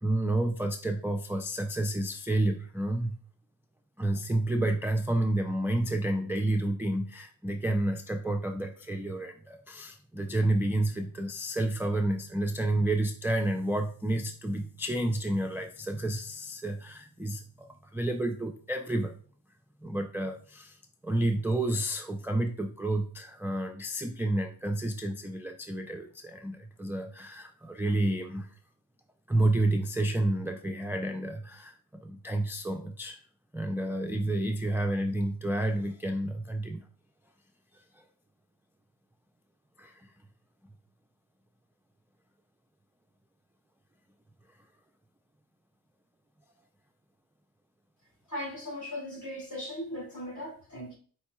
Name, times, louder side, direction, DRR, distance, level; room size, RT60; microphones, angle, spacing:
voice 1, 0.0-3.2 4.0-19.2 19.8-20.8 21.0-28.5 29.3-31.7 32.0-33.2 33.5-36.8 38.0-38.1 39.8-40.1, right 1 dB, 5° right, 0.3 m, -30 dB
voice 2, 48.3-51.0, left 1 dB, 45° left, 2.1 m, -38 dB
4.6 x 4.2 x 2.2 m
cardioid pair, 85°, 41 cm